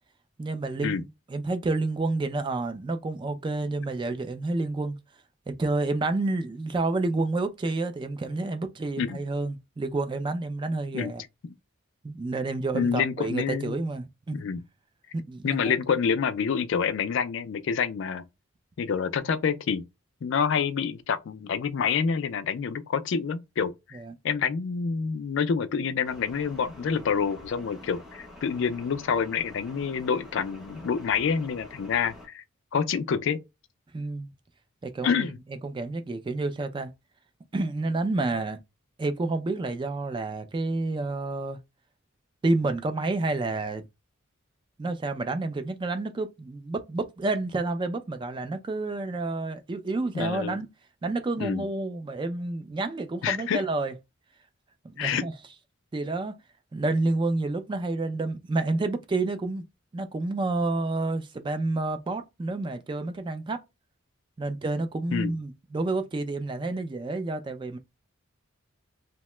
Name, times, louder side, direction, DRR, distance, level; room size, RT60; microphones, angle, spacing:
voice 1, 0.4-5.0 5.5-11.2 12.0-14.5 15.1-15.7 23.9-24.1 33.9-34.3 34.8-36.9 37.5-38.6 39.0-41.6 42.4-43.8 44.8-50.7 51.0-53.9 54.9-55.3 55.9-56.4 56.7-59.7 59.9-63.6 64.4-67.8, right 2 dB, 25° right, 0.3 m, -29 dB
voice 2, 12.7-13.8 14.3-14.6 15.4-18.2 18.8-19.8 20.2-24.0 24.2-32.4 32.7-33.4 35.0-35.4 50.1-50.6 51.4-51.6 53.2-53.6 55.0-55.2 65.1-65.3, left 6 dB, 60° left, 0.3 m, -27 dB
sound 1, 26.0-32.3, left 1 dB, ahead, 0.7 m, -47 dB
2.8 x 2.1 x 3.1 m
head